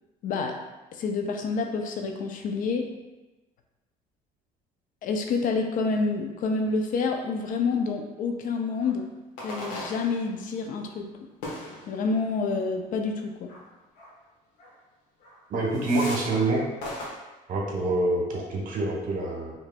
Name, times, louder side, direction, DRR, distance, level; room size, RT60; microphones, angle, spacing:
voice 1, 0.2-0.6 0.9-2.9 5.0-9.1 9.4-11.1 11.9-13.5, left 4 dB, 55° left, 4 dB, 0.5 m, -28 dB
sound 1, 8.8-9.0 9.4-10.6 11.4-12.3 13.5-13.6 14.0-14.1 14.6-14.7 15.2-15.4 15.7-16.5 16.8-17.1, left 1 dB, 85° left, 1.2 m, -39 dB
voice 2, 15.5-16.7 17.5-19.5, right 2 dB, 55° right, -1 dB, 1.0 m, -26 dB
4.8 x 3.0 x 2.2 m, 1.1 s
cardioid pair, 105°, 16 cm